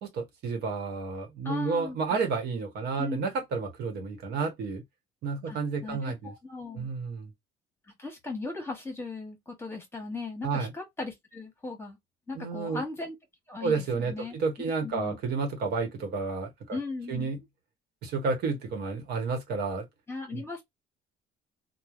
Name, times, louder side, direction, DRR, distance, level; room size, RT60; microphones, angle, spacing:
voice 1, 0.0-4.8 5.2-6.3 6.7-7.3 10.4-10.7 12.3-12.8 13.6-16.8 17.1-17.4 18.0-19.8 20.3-20.4, right 4 dB, 75° right, 1.1 m, -31 dB
voice 2, 1.4-2.0 3.0-3.2 5.5-6.9 8.0-12.0 12.3-13.2 13.5-14.4 14.8-15.2 16.7-17.3 20.1-20.6, left 3 dB, 15° left, 1.1 m, -38 dB
3.1 x 2.2 x 2.4 m
cardioid pair, 110°, 17 cm